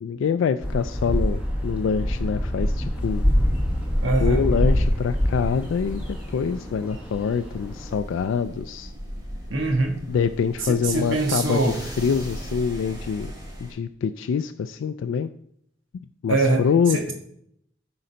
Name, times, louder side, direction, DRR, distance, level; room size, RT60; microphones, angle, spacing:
voice 1, 0.0-3.2 4.2-8.9 10.1-13.3 13.6-15.3 16.2-17.1, left 6 dB, 85° left, 10 dB, 0.3 m, -25 dB
sound 1, 0.6-8.0, equal, 5° right, 1.3 m, -25 dB
sound 2, 2.9-13.7, equal, 20° right, 1.8 m, -39 dB
voice 2, 4.0-4.4 9.5-10.0 10.6-11.8 16.3-16.6 16.9-17.1, right 2 dB, 85° right, 3 dB, 1.4 m, -23 dB
8.5 x 3.9 x 5.1 m, 0.70 s
head